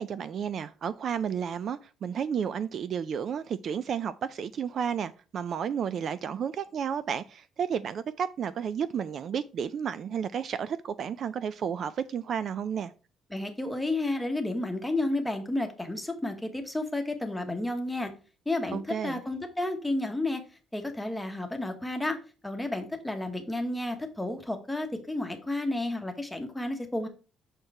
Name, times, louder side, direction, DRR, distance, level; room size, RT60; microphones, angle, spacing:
voice 1, 0.0-12.9 18.7-19.2, right 7 dB, 45° right, 0.3 m, -32 dB
voice 2, 13.3-18.1 18.5-20.4 20.7-22.2 22.4-27.1, left 2 dB, 5° left, 1.1 m, -31 dB
6.5 x 4.4 x 4.7 m
cardioid pair, 160°, 0 cm